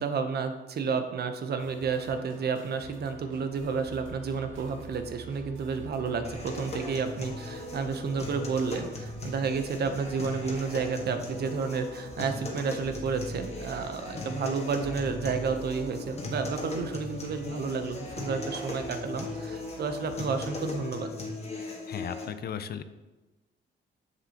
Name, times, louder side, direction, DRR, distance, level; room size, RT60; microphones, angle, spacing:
voice 1, 0.0-21.1, right 5 dB, 55° right, 8 dB, 0.8 m, -31 dB
sound 1, 1.6-20.8, right 2 dB, 90° right, 1.1 m, -48 dB
sound 2, 3.9-13.1, right 1 dB, 30° right, 2.0 m, -54 dB
sound 3, 6.2-22.3, left 2 dB, 30° left, 1.4 m, -38 dB
voice 2, 21.5-22.8, left 8 dB, 55° left, 12 dB, 0.5 m, -37 dB
7.0 x 6.7 x 2.9 m, 1.1 s
cardioid pair, 90°, 20 cm